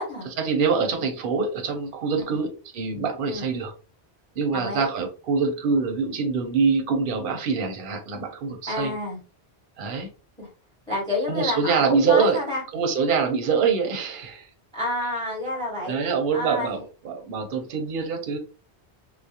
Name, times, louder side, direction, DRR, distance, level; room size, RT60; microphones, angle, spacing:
voice 1, 0.4-3.7 4.4-8.9 9.8-10.1 11.3-12.4 12.7-14.5 15.8-16.8 17.0-18.4, right 5 dB, 60° right, 4 dB, 0.7 m, -24 dB
voice 2, 4.5-4.9 8.7-9.2 10.4-10.5 10.9-12.6 14.7-16.0 16.3-16.8, left 1 dB, 5° left, -4 dB, 1.0 m, -29 dB
2.3 x 2.0 x 2.7 m, 0.34 s
omnidirectional pair, 1.1 m